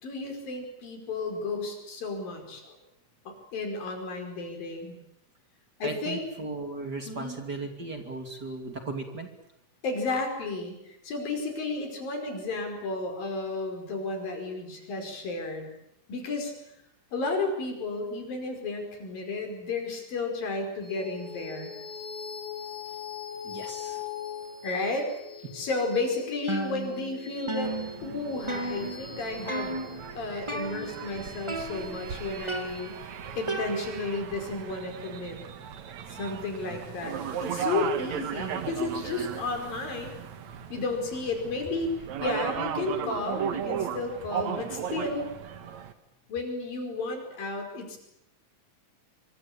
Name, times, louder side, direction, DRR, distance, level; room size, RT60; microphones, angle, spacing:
voice 1, 0.0-2.8 3.3-5.0 5.8-6.2 7.1-7.4 9.8-15.7 16.1-16.5 17.1-21.7 24.6-25.1 25.5-29.8 30.1-33.0 33.4-35.4 36.1-40.2 40.7-41.9 42.2-45.3 46.3-48.0, left 3 dB, 85° left, 4 dB, 6.8 m, -33 dB
voice 2, 5.8-9.3 23.4-24.0 36.7-36.8, right 3 dB, 30° right, 5 dB, 2.9 m, -37 dB
sound 1, 20.8-35.6, left 7 dB, 60° left, 3.7 m, -43 dB
sound 2, 26.5-27.2 27.5-29.2 29.5-30.0 30.5-31.1 31.5-32.1 32.5-34.2, right 2 dB, 10° right, 1.4 m, -35 dB
sound 3, 27.6-45.9, right 8 dB, 60° right, 2.6 m, -36 dB
25.0 x 24.5 x 8.7 m, 0.82 s
omnidirectional pair, 3.9 m